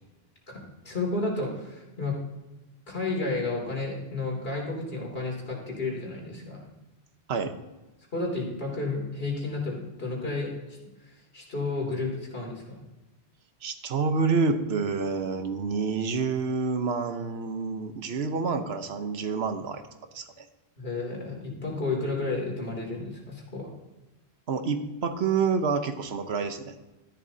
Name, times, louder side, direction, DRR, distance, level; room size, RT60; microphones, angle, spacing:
voice 1, 0.5-2.2 2.9-6.7 8.1-10.5 11.1-12.8 20.8-23.7, left 3 dB, 70° left, -1 dB, 2.9 m, -32 dB
voice 2, 13.6-19.8 20.1-20.5 24.5-26.7, right 5 dB, 80° right, 8 dB, 1.1 m, -28 dB
13.5 x 10.5 x 2.7 m, 1.1 s
omnidirectional pair, 1.1 m